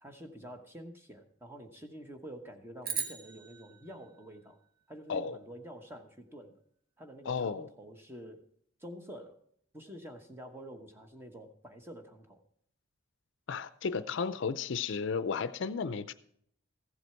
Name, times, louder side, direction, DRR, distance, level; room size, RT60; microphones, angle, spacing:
voice 1, 0.0-4.6 4.9-6.6 7.0-8.5 8.8-9.4 9.7-12.4, equal, 10° right, 4 dB, 1.1 m, -48 dB
sound 1, 2.8-5.3, right 6 dB, 45° right, 1.2 m, -40 dB
voice 2, 7.3-7.7 13.5-16.1, left 5 dB, 60° left, 14 dB, 0.5 m, -33 dB
14.5 x 8.0 x 4.5 m, 0.66 s
head